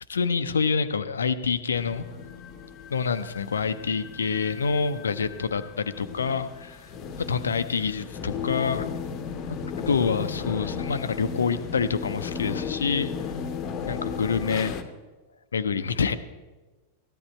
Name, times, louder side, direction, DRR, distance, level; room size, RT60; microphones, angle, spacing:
voice 1, 0.1-2.0 2.9-6.9 7.2-8.9 9.5-9.6 9.9-13.1 13.9-14.8 15.5-16.2, left 5 dB, 70° left, 13 dB, 0.6 m, -27 dB
sound 1, 1.7-14.8, left 6 dB, 35° left, 0.9 m, -35 dB
14.0 x 11.0 x 4.4 m, 1.2 s
figure-of-eight pair, 90°, 0 cm